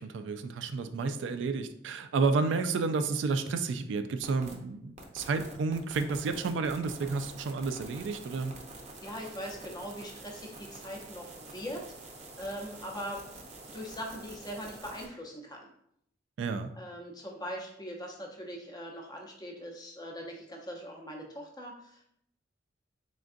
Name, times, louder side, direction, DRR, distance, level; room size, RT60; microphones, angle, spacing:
voice 1, 0.0-8.5 16.4-16.7, right 4 dB, 85° right, 9 dB, 0.3 m, -31 dB
sound 1, 4.2-4.5 5.0-15.1, right 2 dB, 40° right, 0.6 m, -47 dB
voice 2, 9.0-11.8 12.4-13.2 13.7-15.7 16.7-22.1, equal, 20° left, 0 dB, 0.7 m, -41 dB
3.8 x 3.5 x 2.5 m, 0.72 s
head